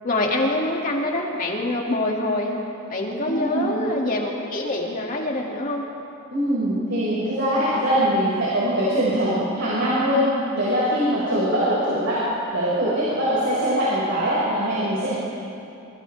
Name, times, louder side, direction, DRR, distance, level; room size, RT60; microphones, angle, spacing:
voice 1, 0.0-2.6 2.9-5.9 11.3-11.4, left 1 dB, 40° left, -2 dB, 2.9 m, -25 dB
voice 2, 3.2-3.7 6.3-10.3 10.5-12.2 12.5-15.1, equal, 60° right, -9 dB, 6.4 m, -22 dB
28.5 x 24.5 x 3.7 m, 2.7 s
head